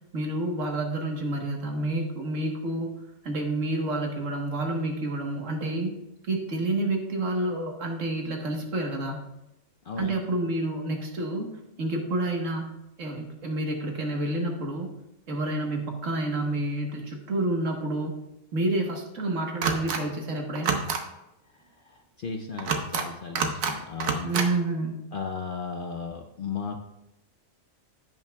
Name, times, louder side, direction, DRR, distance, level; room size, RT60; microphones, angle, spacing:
voice 1, 0.1-2.9 3.2-5.9 6.2-9.3 10.0-11.5 11.8-12.7 13.0-14.9 15.3-18.1 18.5-20.8 24.2-24.9, right 2 dB, 70° right, 2 dB, 1.6 m, -29 dB
sound 1, 19.6-20.0 20.5-21.0 22.6-23.0 23.3-23.7 24.0-24.5, right 5 dB, 90° right, 1.3 m, -27 dB
voice 2, 21.8-24.4 25.1-26.8, left 5 dB, 60° left, 4 dB, 0.6 m, -35 dB
15.5 x 5.7 x 2.3 m, 0.90 s
omnidirectional pair, 1.4 m